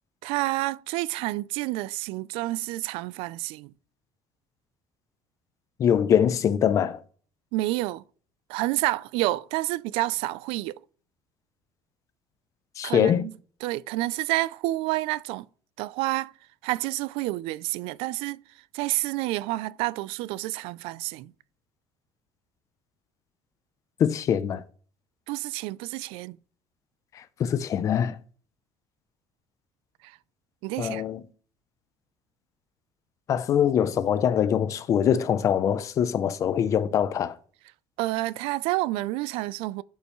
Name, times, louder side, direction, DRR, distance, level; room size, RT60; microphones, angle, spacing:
voice 1, 0.2-3.7 7.5-8.0 8.5-10.8 12.8-13.3 13.6-15.5 15.8-16.3 16.6-18.4 18.7-21.3 25.3-26.4 30.0-30.2 30.6-31.1 38.0-39.8, right 18 dB, 85° right, 0.4 m, -29 dB
voice 2, 5.8-7.0 12.8-13.2 24.0-24.6 27.4-28.2 30.8-31.2 33.3-37.4, left 9 dB, 35° left, 0.5 m, -23 dB
12.5 x 5.6 x 3.1 m
cardioid pair, 170°, 9 cm